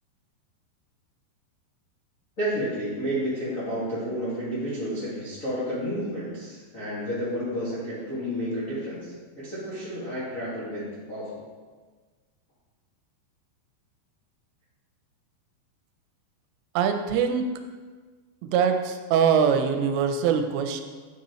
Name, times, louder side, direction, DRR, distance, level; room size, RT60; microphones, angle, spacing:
voice 1, 2.4-11.4, equal, 70° left, -11 dB, 0.7 m, -31 dB
voice 2, 16.8-17.4 18.4-20.8, right 7 dB, 85° right, 6 dB, 2.8 m, -23 dB
9.6 x 5.4 x 3.1 m, 1.4 s
omnidirectional pair, 5.0 m